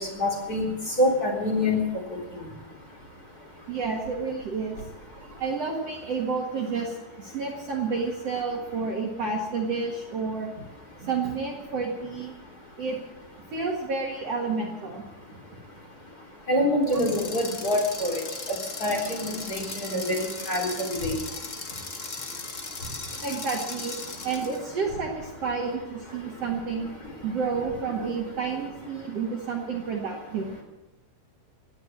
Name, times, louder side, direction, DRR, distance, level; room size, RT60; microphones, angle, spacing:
voice 1, 0.1-0.7 1.0-1.8 16.5-18.2 18.5-21.1, left 1 dB, 25° left, -2 dB, 4.0 m, -26 dB
voice 2, 3.7-4.8 5.4-10.5 11.0-12.3 12.8-13.0 13.5-15.0 15.3-15.4 16.9-17.0 23.2-24.0 24.2-26.9 27.2-30.5, right 4 dB, 50° right, 0 dB, 2.5 m, -30 dB
sound 1, 16.8-24.7, left 4 dB, 55° left, 0.8 m, -37 dB
16.5 x 9.6 x 8.7 m, 1.1 s
omnidirectional pair, 4.1 m